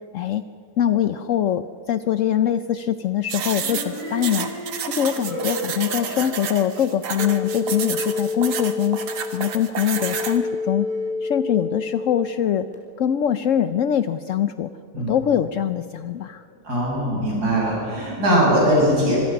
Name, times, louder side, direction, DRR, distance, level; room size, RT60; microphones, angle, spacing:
voice 1, 0.8-4.5 4.9-9.0 9.3-10.9 11.2-12.7 13.0-16.4, left 10 dB, 75° left, 11 dB, 0.7 m, -23 dB
sound 1, 3.3-10.4, right 7 dB, 80° right, 2.1 m, -30 dB
sound 2, 3.5-8.2, equal, 40° left, 8.6 m, -33 dB
sound 3, 7.2-12.8, left 3 dB, 5° left, 3.7 m, -29 dB
voice 2, 16.6-19.2, equal, 50° right, -5 dB, 8.5 m, -20 dB
26.0 x 21.0 x 6.0 m, 2.4 s
omnidirectional pair, 2.1 m